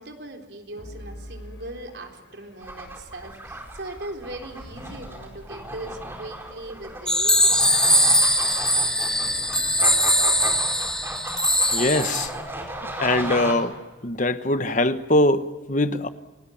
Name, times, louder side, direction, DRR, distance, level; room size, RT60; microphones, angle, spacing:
voice 1, 0.0-8.2, right 1 dB, 65° right, 3.9 m, -39 dB
sound 1, 0.8-12.1, equal, 75° left, 7.8 m, -47 dB
sound 2, 2.6-13.5, right 1 dB, 10° right, 4.7 m, -35 dB
sound 3, 7.1-12.3, equal, 5° left, 1.8 m, -21 dB
voice 2, 11.7-12.3 13.0-13.8 14.0-16.1, left 1 dB, 40° left, 1.1 m, -22 dB
29.5 x 19.5 x 8.7 m
head